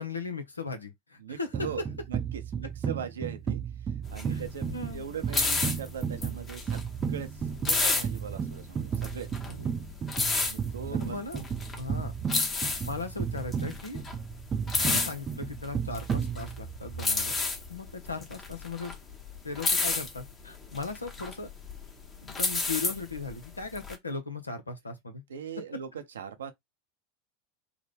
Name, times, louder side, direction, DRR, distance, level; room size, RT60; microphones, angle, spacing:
voice 1, 0.0-1.7 4.3-4.4 4.7-5.2 9.5-9.7 10.9-11.4 11.8-12.1 12.8-14.0 14.8-17.4 17.7-18.9 19.4-21.5 22.2-25.2, left 4 dB, 85° left, 0.7 m, -37 dB
voice 2, 1.2-9.3 10.4-11.4 25.3-26.5, right 7 dB, 75° right, 0.6 m, -40 dB
sound 1, 1.5-16.9, right 7 dB, 30° right, 0.5 m, -34 dB
sound 2, 4.1-23.9, left 3 dB, 25° left, 0.9 m, -31 dB
3.6 x 2.1 x 3.4 m
figure-of-eight pair, 85°, 0 cm